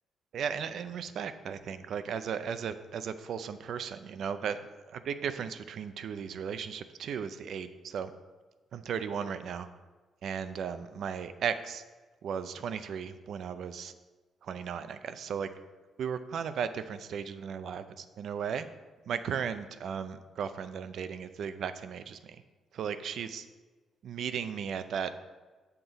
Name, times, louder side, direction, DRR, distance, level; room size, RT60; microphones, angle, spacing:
voice 1, 0.3-4.6 4.9-8.1 8.7-9.7 10.2-11.8 12.2-13.9 14.4-15.5 16.0-18.7 19.1-22.4 22.7-23.5 24.0-25.2, right 7 dB, 55° right, 11 dB, 0.4 m, -36 dB
7.8 x 5.8 x 4.0 m, 1.3 s
cardioid pair, 175°, 0 cm